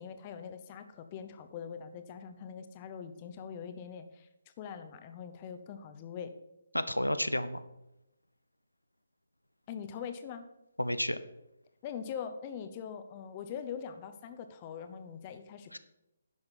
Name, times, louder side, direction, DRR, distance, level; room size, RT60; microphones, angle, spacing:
voice 1, 0.0-4.3 4.6-6.3 9.7-10.5 11.8-15.8, left 7 dB, 25° left, 9 dB, 0.8 m, -42 dB
voice 2, 6.7-7.6 10.8-11.2 15.7-15.8, left 1 dB, 85° left, 12 dB, 0.7 m, -31 dB
11.0 x 6.3 x 5.6 m, 0.90 s
figure-of-eight pair, 140°, 0 cm